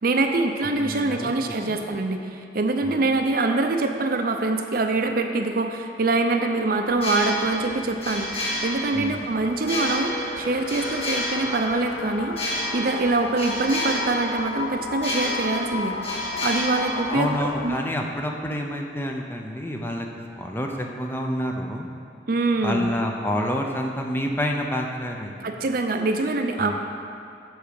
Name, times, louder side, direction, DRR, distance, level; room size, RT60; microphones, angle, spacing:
voice 1, 0.0-16.0 16.4-17.8 22.3-22.9 25.4-26.8, right 3 dB, 50° right, 5 dB, 0.5 m, -24 dB
voice 2, 0.8-1.3 1.7-1.8 2.8-3.0 8.9-9.2 17.1-20.1 20.4-21.9 22.6-25.3 26.6-26.8, equal, 10° left, 2 dB, 0.5 m, -28 dB
sound 1, 6.9-17.7, left 1 dB, 30° left, 1.5 m, -31 dB
sound 2, 9.6-17.7, left 3 dB, 55° left, 0.6 m, -33 dB
7.8 x 4.9 x 6.8 m, 2.4 s
head